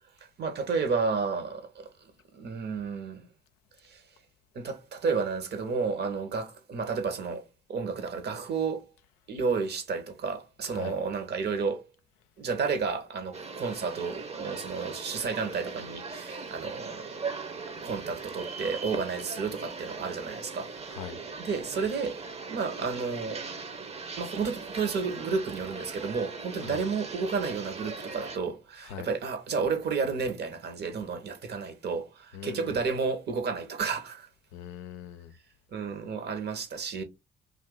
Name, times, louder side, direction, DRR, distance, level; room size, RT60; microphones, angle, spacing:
voice 1, 0.4-3.3 3.8-4.0 4.5-8.8 9.3-11.9 12.4-17.2 17.8-20.7 21.4-22.2 22.5-23.5 24.2-34.3 35.7-37.0, right 5 dB, 55° right, 0.9 m, -31 dB
sound 1, 13.3-28.4, right 4 dB, 30° right, 0.7 m, -40 dB
voice 2, 32.3-32.8 34.5-35.3, left 10 dB, 80° left, 0.5 m, -41 dB
2.7 x 2.5 x 3.7 m
hypercardioid pair, 45°, 21 cm